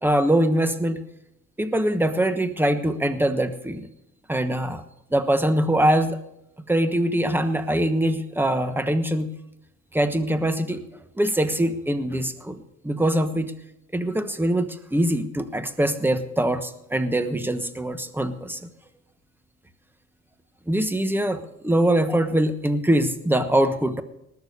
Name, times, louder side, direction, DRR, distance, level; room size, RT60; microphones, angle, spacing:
voice 1, 0.0-1.0 1.6-3.9 4.3-4.8 5.1-6.2 6.7-9.3 9.9-10.8 11.2-12.6 12.8-13.5 13.9-18.7 20.7-24.0, right 1 dB, 5° right, 10 dB, 1.2 m, -23 dB
19.0 x 7.0 x 6.6 m, 0.85 s
cardioid pair, 90°, 30 cm